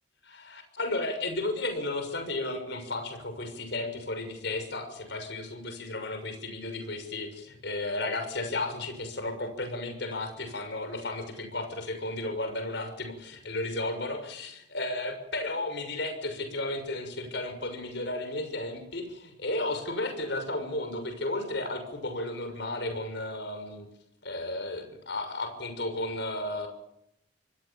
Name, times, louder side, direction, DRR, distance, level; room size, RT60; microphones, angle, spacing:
voice 1, 0.3-23.9 24.2-26.7, left 2 dB, 60° left, 7 dB, 6.4 m, -33 dB
26.5 x 20.0 x 7.4 m, 0.78 s
head